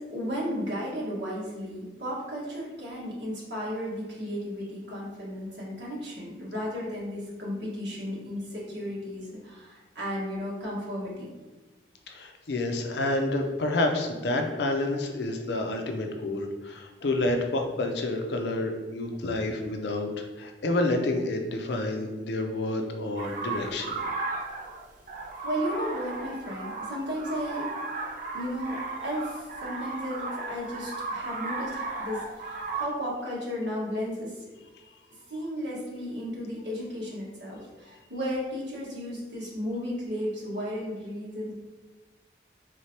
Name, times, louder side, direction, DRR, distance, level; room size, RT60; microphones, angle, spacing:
voice 1, 0.0-11.3 25.4-27.7 28.3-32.2 32.7-34.5 35.3-41.5, equal, 85° right, -5 dB, 1.5 m, -34 dB
voice 2, 12.1-24.0, left 2 dB, 75° left, 4 dB, 0.5 m, -29 dB
sound 1, 23.2-32.9, right 3 dB, 45° right, 0.4 m, -35 dB
3.6 x 3.2 x 2.8 m, 1.3 s
head